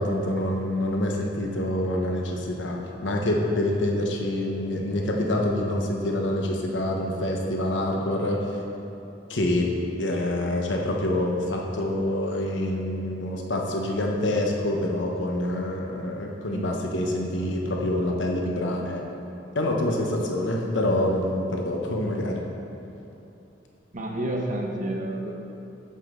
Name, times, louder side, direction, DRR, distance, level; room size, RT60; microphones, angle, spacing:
voice 1, 0.0-2.8 3.0-8.6 9.3-9.7 10.0-19.0 19.5-22.4, left 1 dB, 80° left, 0 dB, 1.0 m, -26 dB
voice 2, 16.4-16.8 23.9-25.3, right 1 dB, 45° right, 0 dB, 1.0 m, -30 dB
8.4 x 8.0 x 3.8 m, 2.9 s
head